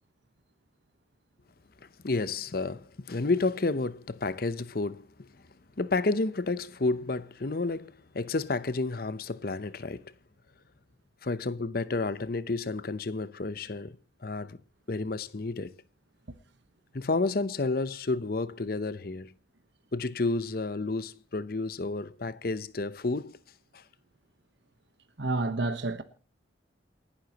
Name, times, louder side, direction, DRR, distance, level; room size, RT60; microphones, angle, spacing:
voice 1, 1.8-5.3 5.8-10.1 11.2-14.0 14.2-14.6 14.9-15.7 16.9-19.3 19.9-23.4 23.7-23.8, left 3 dB, 50° left, 0.7 m, -31 dB
voice 2, 25.2-26.0, right 2 dB, 65° right, 1.1 m, -29 dB
28.5 x 11.5 x 2.9 m
head